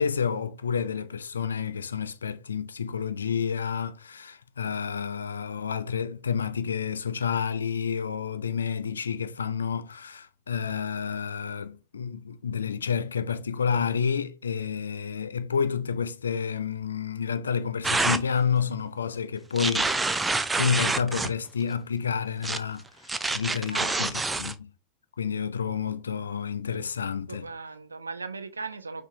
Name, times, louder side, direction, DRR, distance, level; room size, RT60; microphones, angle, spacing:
voice 1, 0.0-20.2 20.5-24.7 25.2-27.5, left 6 dB, 80° left, 0.4 m, -29 dB
sound 1, 17.8-18.2 19.6-21.3 22.4-22.6 23.1-24.5, right 3 dB, 10° right, 0.4 m, -27 dB
voice 2, 23.7-24.1 27.3-29.1, right 4 dB, 85° right, 0.5 m, -38 dB
5.8 x 2.7 x 3.1 m
figure-of-eight pair, 85°, 0 cm